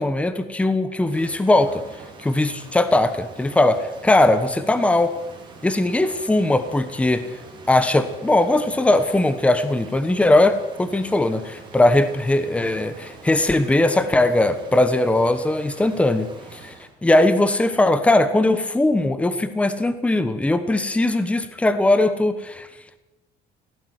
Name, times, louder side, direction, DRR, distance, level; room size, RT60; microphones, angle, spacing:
voice 1, 0.0-1.8 2.2-5.1 5.6-7.3 7.7-16.7 17.0-22.7, left 2 dB, 5° left, 11 dB, 1.2 m, -19 dB
Rain, 1.1-16.9, right 3 dB, 25° right, 4.8 m, -44 dB
17.5 x 17.0 x 9.6 m, 1.0 s
cardioid pair, 170°, 18 cm